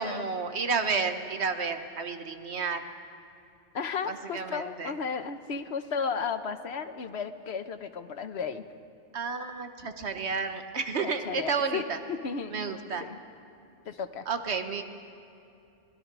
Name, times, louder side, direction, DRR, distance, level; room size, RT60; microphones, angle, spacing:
voice 1, 0.0-2.8 4.1-4.9 9.1-12.0 12.5-13.0 14.3-14.8, right 5 dB, 65° right, 7 dB, 1.5 m, -31 dB
voice 2, 3.7-8.6 11.0-12.7 13.0-13.2 13.9-14.3, left 6 dB, 65° left, 10 dB, 1.2 m, -34 dB
23.0 x 20.5 x 6.1 m, 2.6 s
omnidirectional pair, 1.2 m